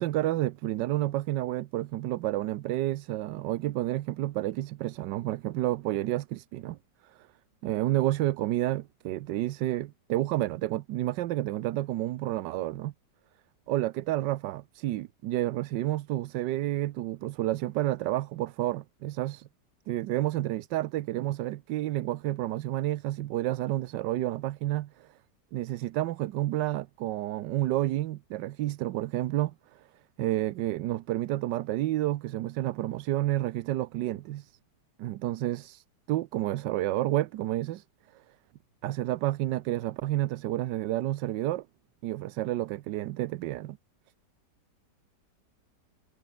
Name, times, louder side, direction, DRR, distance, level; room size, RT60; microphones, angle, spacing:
voice 1, 0.0-6.8 7.0-7.3 7.6-12.9 13.7-19.5 19.9-25.1 25.5-29.9 30.2-34.5 35.0-37.8 38.1-38.2 38.8-41.7 42.0-43.8, right 15 dB, 90° right, 1.3 m, -30 dB
omnidirectional pair, 1.9 m